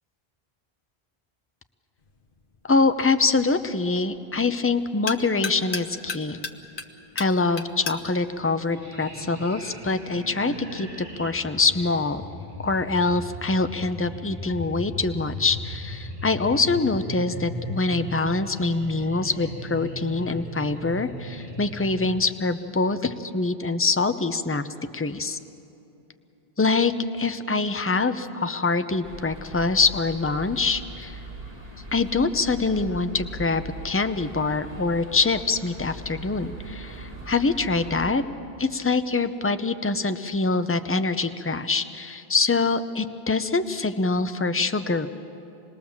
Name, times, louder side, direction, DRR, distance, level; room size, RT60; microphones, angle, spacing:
sound 1, 2.0-9.6, left 4 dB, 55° left, 1.2 m, -38 dB
voice 1, 2.6-6.4 7.2-12.2 12.6-24.6 24.9-25.4 26.6-31.2 31.9-38.2 38.6-45.1, left 3 dB, 15° left, 9 dB, 0.5 m, -24 dB
sound 2, 8.7-22.2, equal, 40° right, 1.9 m, -37 dB
sound 3, 29.0-38.1, right 1 dB, 25° right, 1.9 m, -40 dB
26.5 x 20.5 x 7.2 m, 2.8 s
omnidirectional pair, 1.0 m